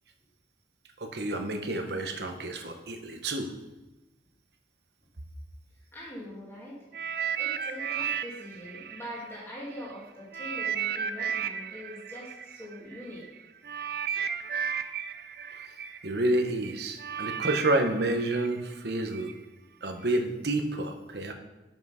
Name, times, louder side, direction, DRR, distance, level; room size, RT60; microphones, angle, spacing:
voice 1, 1.0-3.5 16.0-19.3 19.8-21.3, right 1 dB, 70° right, 5 dB, 1.0 m, -29 dB
voice 2, 5.9-6.8 7.4-13.2, equal, 15° left, -5 dB, 2.0 m, -42 dB
sound 1, 6.9-9.9 10.3-19.3 20.0-20.2, right 8 dB, 55° right, 0.4 m, -34 dB
7.2 x 5.9 x 5.6 m, 1.1 s
head